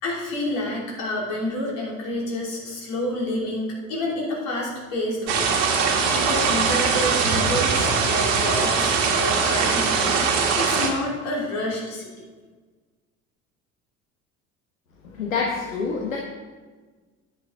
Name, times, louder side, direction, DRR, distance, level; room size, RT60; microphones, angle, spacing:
voice 1, 0.0-10.3 10.5-12.2, left 1 dB, 60° left, -3 dB, 3.0 m, -29 dB
sound 1, 5.3-10.9, right 5 dB, 65° right, 1.5 m, -21 dB
voice 2, 15.0-16.2, left 5 dB, 75° left, -1 dB, 1.1 m, -27 dB
9.8 x 8.2 x 3.8 m, 1.4 s
figure-of-eight pair, 55°, 40 cm